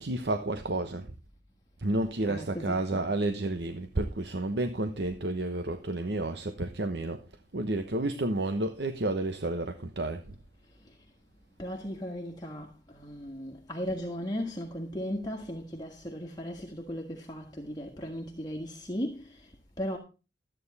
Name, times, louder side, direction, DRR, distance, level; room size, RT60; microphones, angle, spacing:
voice 1, 0.0-1.1 1.8-7.2 7.5-10.2, right 2 dB, 70° right, 1.0 m, -31 dB
voice 2, 2.3-3.0 10.8-11.0 11.6-20.0, equal, 25° left, 1.6 m, -37 dB
13.5 x 9.2 x 4.1 m
head